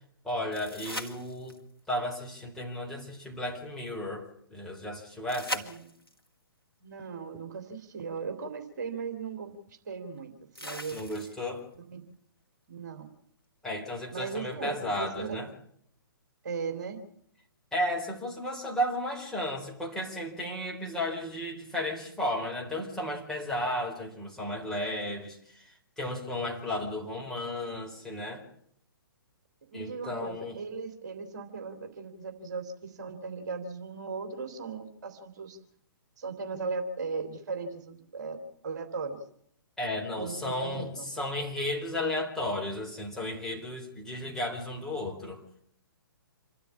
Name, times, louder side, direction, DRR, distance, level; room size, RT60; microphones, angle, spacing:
voice 1, 0.2-1.6 1.9-5.7 10.9-11.6 13.6-15.5 17.7-28.5 29.7-30.6 39.8-45.4, left 1 dB, 5° left, -2 dB, 4.2 m, -34 dB
sound 1, 0.5-1.8 5.3-6.3 8.2-8.3 10.6-11.6 14.5-14.6, equal, 90° left, 2.6 m, -39 dB
voice 2, 6.8-10.3 10.6-11.0 11.7-12.0 12.7-13.1 14.1-15.4 16.4-17.0 29.7-35.6 36.2-38.4 38.6-39.2 40.2-41.1, right 4 dB, 50° right, 6 dB, 3.0 m, -37 dB
27.5 x 12.5 x 8.6 m, 0.68 s
figure-of-eight pair, 125°, 12 cm